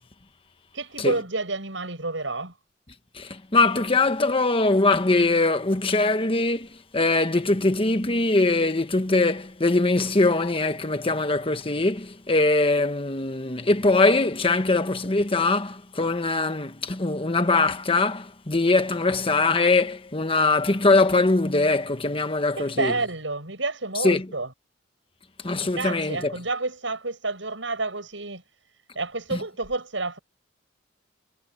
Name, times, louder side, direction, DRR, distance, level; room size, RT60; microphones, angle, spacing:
voice 1, 0.7-2.5 22.6-24.5 25.6-28.4 28.9-30.2, right 3 dB, 85° right, 7.8 m, -29 dB
voice 2, 3.1-6.7 6.9-22.9 24.0-24.3 25.4-26.3 29.3-29.4, left 3 dB, 30° left, 1.4 m, -22 dB
head